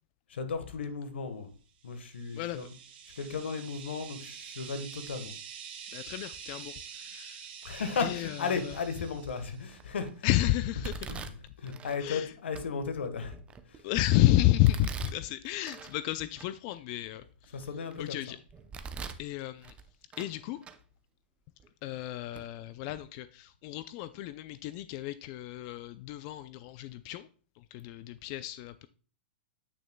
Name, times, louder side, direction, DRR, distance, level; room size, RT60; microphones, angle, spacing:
voice 1, 0.3-1.5 1.8-2.7 3.2-5.3 7.6-10.1 11.1-11.3 11.6-13.4 13.7-13.8 17.5-18.2, left 5 dB, 85° left, 9 dB, 1.3 m, -35 dB
sound 1, 1.9-9.7, right 7 dB, 60° right, 1.7 m, -46 dB
voice 2, 2.3-2.7 5.9-7.5 8.0-8.8 10.2-11.1 12.0-12.3 13.8-17.6 18.0-18.4 19.2-19.7 20.2-20.6 21.8-27.3 27.6-28.9, left 15 dB, 40° left, 14 dB, 0.4 m, -31 dB
Domestic sounds home sounds, 8.7-9.1 9.7-10.1 10.8-12.0 12.6-12.7 13.2-14.0 14.6-16.0 16.4-16.5 17.1-18.0 18.5-19.3 19.6-20.4 20.6-20.8 21.6-21.7 22.3-22.5 22.8-23.0, right 5 dB, 20° right, 0.6 m, -43 dB
8.6 x 6.2 x 2.2 m, 0.40 s
hypercardioid pair, 130°, 6 cm